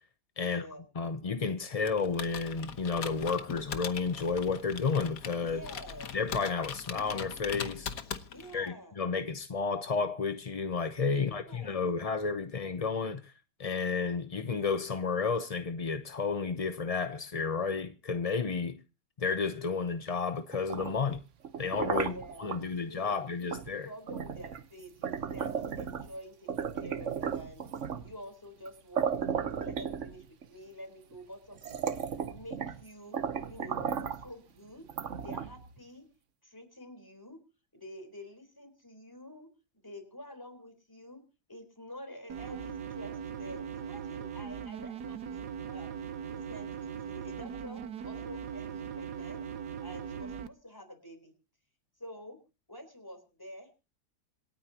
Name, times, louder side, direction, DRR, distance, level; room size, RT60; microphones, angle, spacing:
voice 1, 0.4-0.9 5.4-6.2 8.3-8.9 11.1-12.0 21.9-23.6 23.8-27.6 28.0-31.9 32.3-33.2 33.5-34.9 35.2-36.1 36.4-37.4 37.7-41.2 41.5-45.9 46.2-49.4 49.8-51.3 52.0-52.4 52.7-53.7, equal, 10° left, 3.9 m, -48 dB
voice 2, 0.9-5.6 6.1-7.9 8.5-13.3 13.6-18.8 19.2-21.2 21.6-22.1 22.4-23.9, left 5 dB, 40° left, 0.5 m, -31 dB
Computer keyboard, 1.8-8.7, left 7 dB, 60° left, 1.5 m, -41 dB
sound 1, 20.5-22.6 23.5-23.7 24.1-26.1 26.5-28.1 28.7-28.8 29.0-30.4 31.1-31.2 31.6-32.8 33.1-34.3 34.9-35.7, right 7 dB, 55° right, 1.2 m, -35 dB
sound 2, 42.3-50.5, right 7 dB, 75° right, 1.5 m, -40 dB
26.5 x 9.5 x 2.9 m
omnidirectional pair, 1.7 m